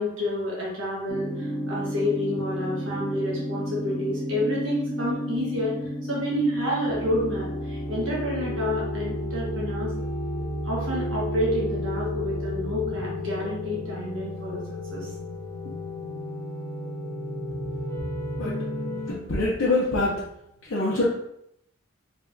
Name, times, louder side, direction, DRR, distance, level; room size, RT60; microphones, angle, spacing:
voice 1, 0.0-9.9 10.6-14.6 14.9-15.1 15.6-15.7, left 1 dB, 70° right, -5 dB, 1.4 m, -29 dB
sound 1, 1.1-19.1, equal, 10° left, 1.2 m, -32 dB
voice 2, 19.1-20.2 20.6-21.1, left 2 dB, 70° left, -6 dB, 0.7 m, -25 dB
3.5 x 3.3 x 2.6 m, 0.78 s
head